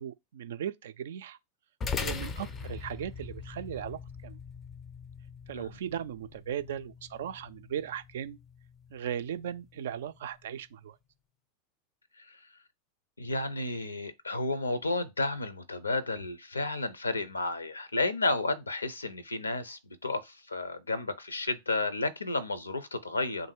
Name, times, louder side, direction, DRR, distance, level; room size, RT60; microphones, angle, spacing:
voice 1, 0.0-1.4 2.0-4.4 5.5-8.4 8.9-11.0, right 9 dB, 60° right, 0.3 m, -37 dB
sound 1, 1.8-10.5, left 5 dB, 25° left, 0.4 m, -42 dB
voice 2, 13.2-23.5, left 2 dB, 80° left, 0.5 m, -32 dB
3.5 x 2.6 x 4.5 m
figure-of-eight pair, 90°, 0 cm